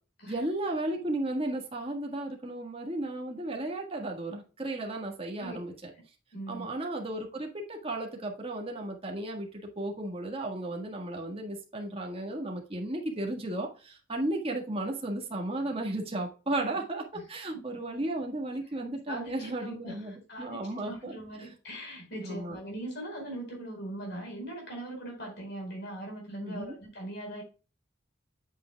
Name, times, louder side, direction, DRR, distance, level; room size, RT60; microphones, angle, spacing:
voice 1, 0.3-5.9 6.5-20.1 20.4-21.1 22.2-22.6 26.4-26.7, right 1 dB, 30° right, 1 dB, 1.5 m, -34 dB
voice 2, 6.3-6.7 17.5-17.6 19.1-27.4, right 1 dB, 55° left, 1 dB, 4.6 m, -40 dB
8.2 x 7.9 x 2.3 m, 0.34 s
head